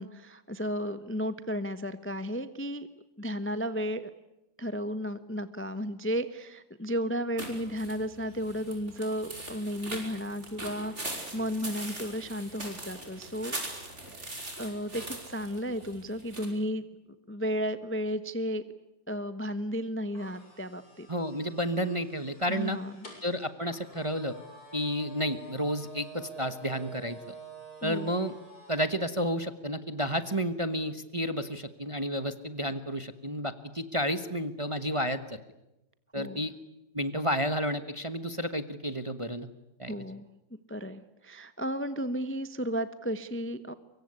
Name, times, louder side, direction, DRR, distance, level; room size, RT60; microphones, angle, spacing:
voice 1, 0.0-2.9 3.2-4.1 4.6-13.6 14.6-16.9 17.3-18.6 19.1-21.1 22.5-22.9 27.8-28.1 36.2-36.4 39.9-40.2 40.7-43.7, equal, 10° left, 11 dB, 0.8 m, -33 dB
sound 1, 7.4-16.5, right 2 dB, 35° right, 5.8 m, -41 dB
sound 2, 20.1-28.9, right 2 dB, 55° left, 7.5 m, -49 dB
voice 2, 21.1-22.8 23.2-24.4 24.7-27.2 27.8-28.3 28.7-35.4 36.1-36.5 36.9-39.5 39.8-40.0, equal, 20° right, 11 dB, 1.0 m, -31 dB
24.5 x 23.5 x 9.8 m, 0.93 s
omnidirectional pair, 2.0 m